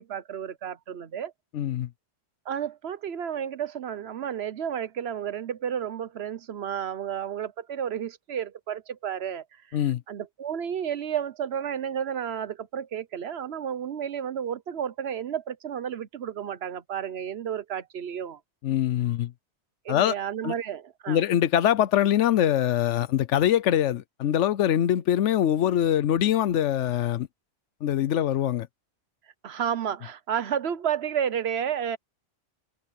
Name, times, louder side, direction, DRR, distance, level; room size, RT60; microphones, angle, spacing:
voice 1, 0.0-1.3 2.5-9.8 10.1-18.4 19.8-21.2 29.4-32.0, right 8 dB, 65° right, 1.0 m, -32 dB
voice 2, 1.5-1.9 9.7-10.0 18.6-19.3 19.9-20.1 20.4-20.5 21.1-27.3 27.8-28.7, left 11 dB, 80° left, 1.0 m, -23 dB
omnidirectional pair, 1.2 m